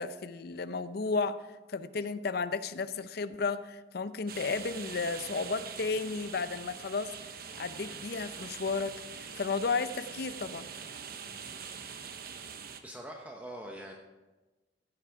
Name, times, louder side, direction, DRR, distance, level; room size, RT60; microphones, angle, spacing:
voice 1, 0.0-1.4 1.7-7.1 7.6-10.7, left 4 dB, 60° left, 13 dB, 0.5 m, -33 dB
sound 1, 4.3-12.8, right 6 dB, 55° right, 0.9 m, -44 dB
voice 2, 12.8-13.9, right 1 dB, 10° right, 1 dB, 0.9 m, -43 dB
15.5 x 8.3 x 4.7 m, 1.2 s
head